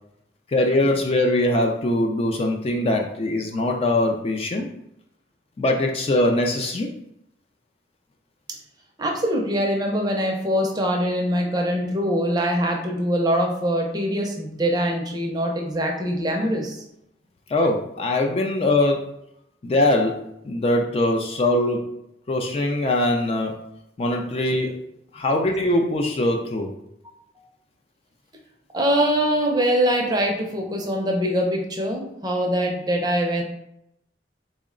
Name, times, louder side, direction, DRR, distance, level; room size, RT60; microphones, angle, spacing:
voice 1, 0.5-4.7 5.6-6.9 17.5-19.1 19.6-20.2 20.4-21.8 22.3-23.5 24.0-24.7 25.1-26.7, left 1 dB, 35° left, 1 dB, 0.3 m, -22 dB
voice 2, 9.0-16.8 27.4-27.5 28.7-33.4, equal, 20° right, 1 dB, 0.5 m, -23 dB
3.7 x 2.1 x 3.6 m, 0.79 s
head